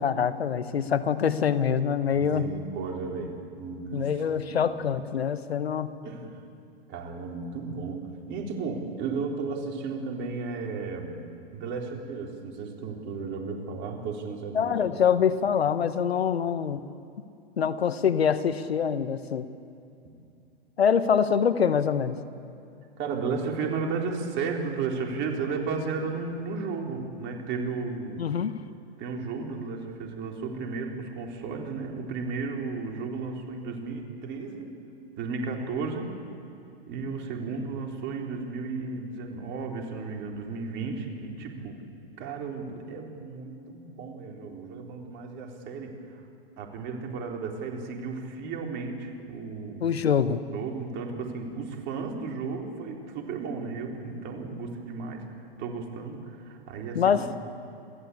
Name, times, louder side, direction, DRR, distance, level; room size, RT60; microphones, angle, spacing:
voice 1, 0.0-2.5 3.9-5.9 14.5-16.8 17.6-19.5 20.8-22.2 28.2-28.5 49.8-50.4 56.9-57.3, left 7 dB, 85° left, 13 dB, 1.2 m, -25 dB
voice 2, 2.1-4.1 4.5-4.6 6.0-6.3 6.9-11.2 11.5-14.7 23.0-28.2 29.0-34.7 35.2-36.1 36.9-41.7 42.2-46.2 46.6-49.9 50.5-55.2 55.6-57.2, right 4 dB, 35° right, 1 dB, 4.0 m, -34 dB
27.0 x 16.0 x 8.6 m, 2.6 s
hypercardioid pair, 110°, 30 cm